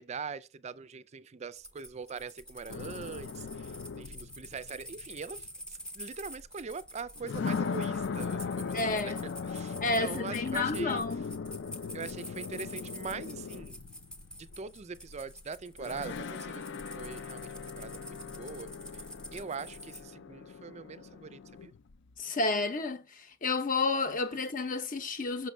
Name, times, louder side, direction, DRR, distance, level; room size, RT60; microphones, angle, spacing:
voice 1, 0.0-11.0 11.9-13.8 14.4-19.0 19.3-21.7 24.3-24.4, right 5 dB, 30° right, 0.4 m, -42 dB
sound 1, 1.5-20.0, equal, 5° left, 0.8 m, -48 dB
sound 2, 2.7-5.5 6.4-6.5 7.2-15.3 15.8-22.1, left 5 dB, 55° left, 0.4 m, -39 dB
voice 2, 8.7-9.3 9.8-11.3 22.2-25.5, left 3 dB, 40° left, 0.8 m, -31 dB
6.3 x 5.8 x 3.2 m
head